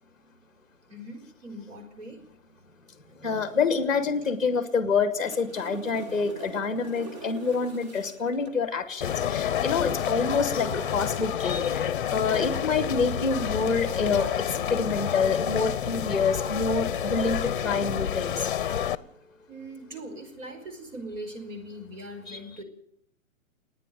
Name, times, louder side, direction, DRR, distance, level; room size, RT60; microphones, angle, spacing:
voice 1, 0.9-2.2 19.5-22.6, right 1 dB, 60° right, 4 dB, 5.5 m, -41 dB
voice 2, 3.2-18.5 22.3-22.4, left 5 dB, ahead, 8 dB, 1.9 m, -27 dB
sound 1, 4.9-8.6 12.4-12.6, right 3 dB, 30° right, 1.6 m, -43 dB
sound 2, 9.0-19.0, left 9 dB, 40° left, 0.8 m, -29 dB
28.5 x 9.8 x 9.3 m, 0.72 s
hypercardioid pair, 160°, 41 cm